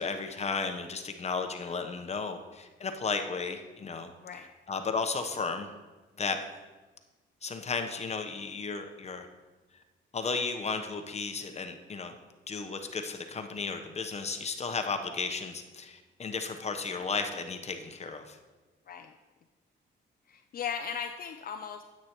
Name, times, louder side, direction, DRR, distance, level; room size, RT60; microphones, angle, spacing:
voice 1, 0.0-4.1 4.7-5.7 6.2-6.4 7.4-9.3 10.1-12.1 12.5-18.4, left 4 dB, 35° left, 6 dB, 0.9 m, -34 dB
voice 2, 20.3-21.8, left 7 dB, 50° left, 6 dB, 0.5 m, -37 dB
9.7 x 8.4 x 3.0 m, 1.2 s
cardioid pair, 90°, 20 cm